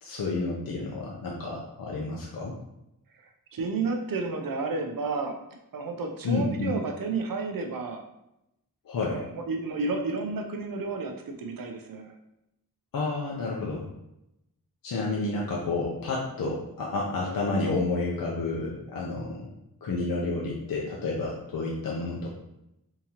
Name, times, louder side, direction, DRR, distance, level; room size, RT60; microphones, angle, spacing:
voice 1, 0.0-2.5 6.2-6.8 8.9-9.3 12.9-13.9 14.8-19.5 19.8-22.3, left 3 dB, 65° left, -3 dB, 0.6 m, -30 dB
voice 2, 3.5-5.3 5.7-8.0 9.1-12.1, right 3 dB, 65° right, 3 dB, 0.6 m, -31 dB
3.6 x 2.9 x 2.8 m, 0.85 s
wide cardioid pair, 175°, 37 cm